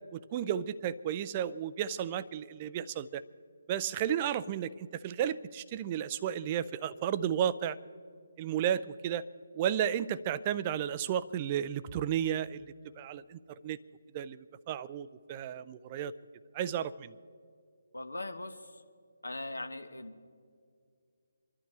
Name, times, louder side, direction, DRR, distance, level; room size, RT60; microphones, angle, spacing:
voice 1, 0.1-3.2 3.7-7.8 8.4-9.2 9.6-12.6 13.0-13.8 14.1-16.1 16.5-17.1, right 9 dB, 25° right, 14 dB, 0.4 m, -33 dB
voice 2, 17.9-18.8 19.2-20.3, left 2 dB, 75° left, 7 dB, 1.1 m, -40 dB
28.0 x 11.5 x 3.3 m, 2.3 s
figure-of-eight pair, 145°, 0 cm